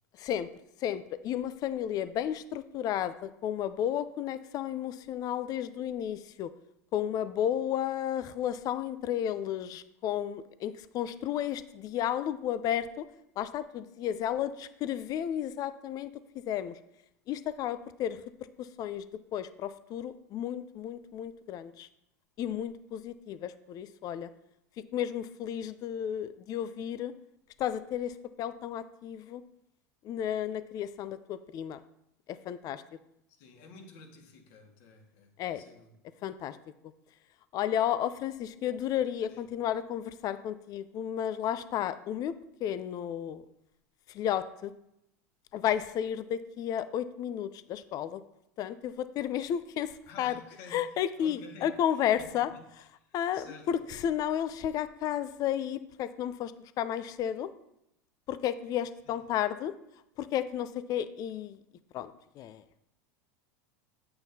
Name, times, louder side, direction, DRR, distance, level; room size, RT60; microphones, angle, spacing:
voice 1, 0.8-6.5 6.9-13.0 13.4-16.1 16.5-16.7 17.3-18.2 18.6-19.0 19.3-21.9 22.4-24.3 24.9-27.1 27.6-29.4 30.0-31.8 32.3-32.8 35.4-35.6 36.2-36.6 37.5-42.3 42.6-43.4 44.1-44.7 45.5-48.2 48.6-50.4 50.7-52.5 53.1-57.5 58.3-59.7 60.2-61.6 61.9-62.6, left 10 dB, 45° left, 14 dB, 0.5 m, -32 dB
voice 2, 33.4-35.9 39.3-39.4 50.1-50.9 51.2-51.7 52.2-53.7, left 4 dB, 60° left, 2 dB, 1.8 m, -52 dB
8.8 x 7.6 x 2.8 m, 0.81 s
hypercardioid pair, 90°, 9 cm